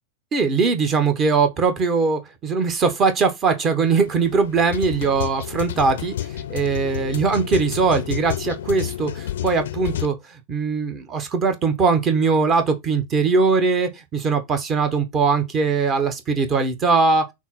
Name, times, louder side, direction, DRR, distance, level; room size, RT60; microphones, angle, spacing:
voice 1, 0.3-10.1 10.5-17.3, right 4 dB, 30° right, 0.9 m, -21 dB
sound 1, 3.9-10.0, left 12 dB, 60° left, 0.5 m, -30 dB
6.0 x 2.0 x 4.0 m
figure-of-eight pair, 90°, 0 cm